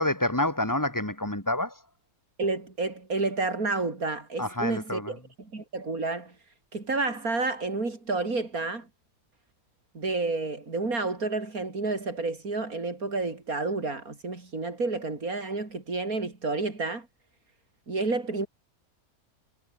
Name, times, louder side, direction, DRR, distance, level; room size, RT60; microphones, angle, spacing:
voice 1, 0.0-1.7 4.4-5.1, left 1 dB, 10° left, 3.6 m, -28 dB
voice 2, 2.4-6.3 6.7-8.9 9.9-17.1 17.9-18.5, right 3 dB, 75° right, 4.7 m, -30 dB
omnidirectional pair, 1.5 m